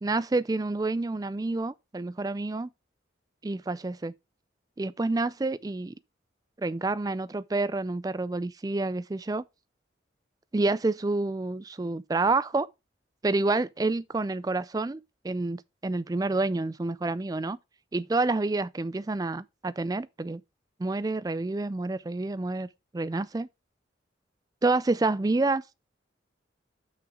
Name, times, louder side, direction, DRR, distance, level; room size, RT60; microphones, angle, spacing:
voice 1, 0.0-2.7 3.4-4.1 4.8-5.9 6.6-9.4 10.5-12.7 13.2-17.6 17.9-20.4 20.8-22.7 22.9-23.5 24.6-25.6, right 2 dB, 20° right, 0.3 m, -28 dB
6.3 x 5.5 x 4.8 m
head